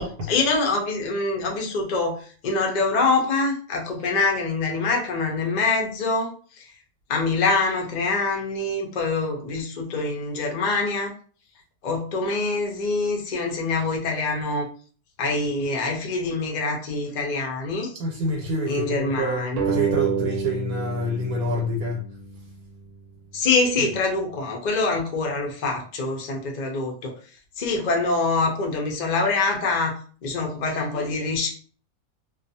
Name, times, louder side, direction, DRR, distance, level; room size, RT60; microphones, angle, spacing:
voice 1, 0.3-6.3 7.1-11.1 11.8-14.7 15.2-17.9 18.7-19.6 23.3-27.1 27.6-30.0 30.2-31.5, left 3 dB, 70° left, 1 dB, 0.4 m, -25 dB
voice 2, 18.0-22.1 23.8-23.9, right 1 dB, 85° right, -2 dB, 1.1 m, -27 dB
sound 1, 19.6-22.8, right 5 dB, 65° right, 0.8 m, -29 dB
2.4 x 2.3 x 2.7 m, 0.42 s
omnidirectional pair, 1.6 m